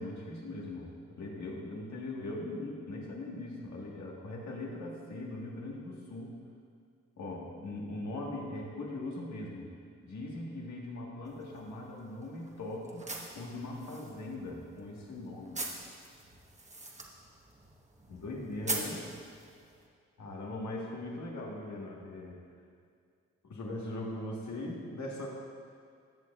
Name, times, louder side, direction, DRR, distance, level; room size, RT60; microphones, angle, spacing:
voice 1, 0.0-6.3 7.2-9.7 10.0-13.1 13.3-15.6 18.1-19.1 20.2-22.4 23.4-25.3, left 2 dB, 70° left, -2 dB, 1.6 m, -40 dB
sound 1, 11.3-19.8, right 2 dB, 25° right, 1.2 m, -43 dB
16.0 x 6.4 x 2.4 m, 2.2 s
cardioid pair, 60°, 29 cm